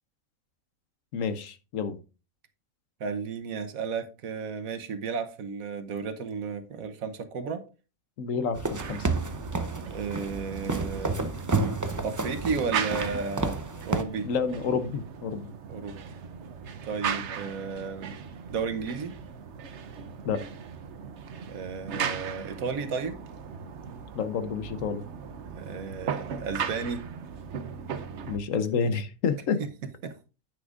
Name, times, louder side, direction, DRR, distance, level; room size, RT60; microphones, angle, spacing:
voice 1, 1.1-2.0 8.2-9.1 14.2-15.5 20.2-20.4 24.1-25.0 28.3-29.6, left 5 dB, 70° left, 1.2 m, -29 dB
voice 2, 3.0-7.6 9.8-11.3 12.0-13.6 13.8-14.3 15.7-16.1 16.8-18.2 18.5-19.2 21.5-23.2 25.4-27.0 29.6-29.7 30.0-30.2, right 5 dB, 80° right, 1.4 m, -33 dB
sound 1, 8.6-14.0, right 3 dB, 30° right, 0.3 m, -31 dB
sound 2, 8.8-28.4, right 7 dB, 60° right, 1.0 m, -37 dB
9.7 x 8.4 x 2.5 m
omnidirectional pair, 1.4 m